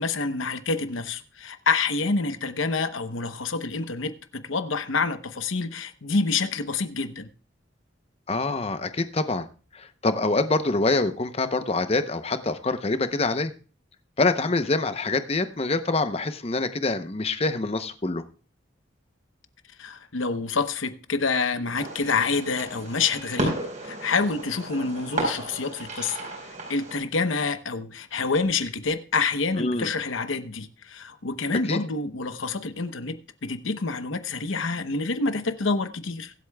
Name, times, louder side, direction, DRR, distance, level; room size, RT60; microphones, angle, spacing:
voice 1, 0.0-7.3 19.8-23.6 23.8-36.3, left 4 dB, 85° left, 0.9 m, -27 dB
voice 2, 8.3-9.5 9.7-13.5 14.2-18.2 29.6-29.9 31.7-31.8, left 3 dB, 30° left, 0.7 m, -25 dB
Fireworks, 21.7-27.0, right 1 dB, 40° right, 4.4 m, -33 dB
23.0 x 8.2 x 2.3 m
head